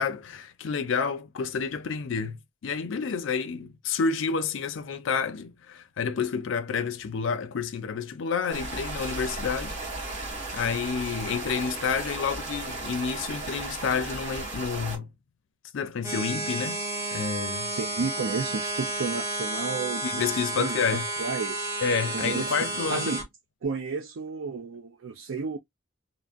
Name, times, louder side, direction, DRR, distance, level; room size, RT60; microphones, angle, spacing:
voice 1, 0.0-9.8 10.1-10.2 10.5-15.1 15.7-16.8 17.1-17.7 20.0-21.1 21.8-23.1, left 5 dB, 70° left, 0.4 m, -29 dB
sound 1, 8.5-15.0, right 2 dB, 35° right, 1.6 m, -35 dB
sound 2, 16.0-23.2, right 2 dB, 15° right, 1.0 m, -31 dB
voice 2, 17.7-20.1 20.6-21.7 22.1-22.5 22.9-23.2 23.6-25.6, right 4 dB, 90° right, 0.5 m, -32 dB
3.4 x 2.0 x 2.4 m
head